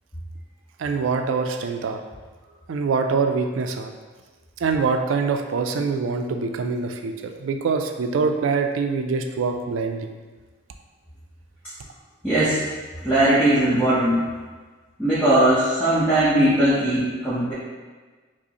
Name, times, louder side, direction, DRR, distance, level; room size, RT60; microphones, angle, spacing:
voice 1, 0.8-2.0 2.7-3.9 4.6-7.1 7.4-10.1, right 4 dB, 80° right, 5 dB, 0.3 m, -24 dB
voice 2, 12.2-12.6 13.0-14.2 15.0-17.5, right 1 dB, 10° left, -12 dB, 0.8 m, -19 dB
4.9 x 2.0 x 2.8 m, 1.4 s
head